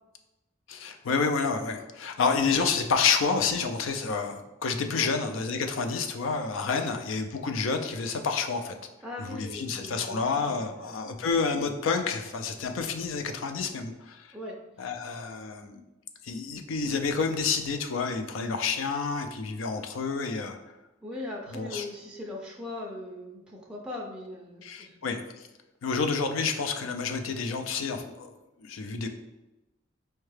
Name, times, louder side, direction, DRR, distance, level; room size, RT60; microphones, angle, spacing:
voice 1, 0.7-8.8 9.3-14.3 14.8-15.8 16.2-20.6 21.5-21.8 24.6-25.5 25.8-28.3 28.6-29.1, left 5 dB, 85° left, 6 dB, 0.4 m, -29 dB
voice 2, 9.0-10.8 14.3-14.6 21.0-25.0, left 2 dB, 5° right, -3 dB, 0.3 m, -40 dB
4.5 x 2.2 x 3.2 m, 1.0 s
head